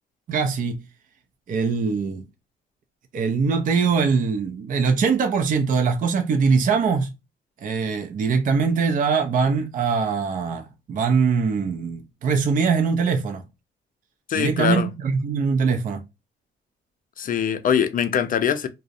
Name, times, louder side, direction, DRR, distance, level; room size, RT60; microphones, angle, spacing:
voice 1, 0.3-0.8 1.5-2.2 3.1-7.1 7.6-13.4 14.3-16.0, right 5 dB, 45° right, 0.4 m, -22 dB
voice 2, 14.3-14.9 17.2-18.7, left 8 dB, 45° left, 0.4 m, -22 dB
2.4 x 2.0 x 2.5 m
cardioid pair, 90°, 20 cm